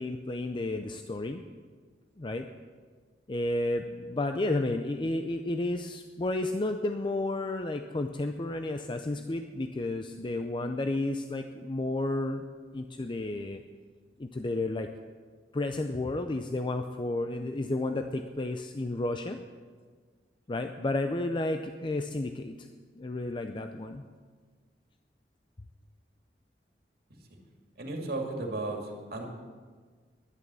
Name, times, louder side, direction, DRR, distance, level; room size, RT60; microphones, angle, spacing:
voice 1, 0.0-1.4 2.2-2.5 3.3-12.4 12.7-13.6 14.2-14.9 15.5-19.4 20.5-22.7 23.0-24.0, left 2 dB, 30° left, 6 dB, 0.5 m, -32 dB
voice 2, 27.8-29.3, right 2 dB, 60° right, 2 dB, 2.2 m, -34 dB
11.0 x 11.0 x 6.9 m, 1.6 s
head